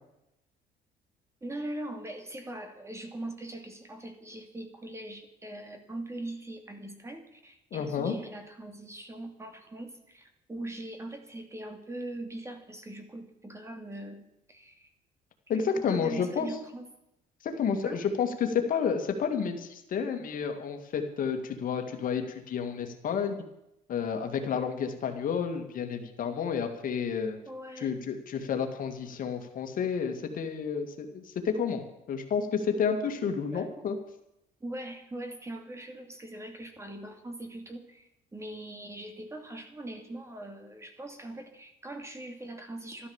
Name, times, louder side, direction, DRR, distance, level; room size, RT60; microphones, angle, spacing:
voice 1, 1.4-14.9 15.5-16.9 17.8-18.0 27.5-28.0 33.2-33.8 34.6-43.1, right 1 dB, 15° right, 5 dB, 2.6 m, -41 dB
voice 2, 7.7-8.1 15.5-16.5 17.4-23.4 23.9-27.4 27.8-34.0, left 6 dB, 55° left, 6 dB, 2.2 m, -30 dB
13.0 x 12.5 x 7.3 m, 0.85 s
cardioid pair, 110°, 17 cm